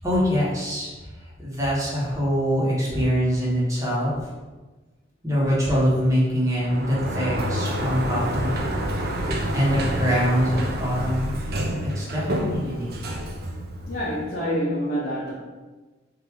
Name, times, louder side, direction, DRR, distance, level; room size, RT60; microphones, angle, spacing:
voice 1, 0.0-4.3 5.2-8.6 9.5-13.1, equal, 15° right, -7 dB, 1.2 m, -24 dB
Sliding door, 6.5-14.3, equal, 50° right, 0.5 m, -28 dB
voice 2, 13.9-15.3, equal, 45° left, -6 dB, 0.7 m, -27 dB
3.6 x 2.6 x 4.6 m, 1.2 s
head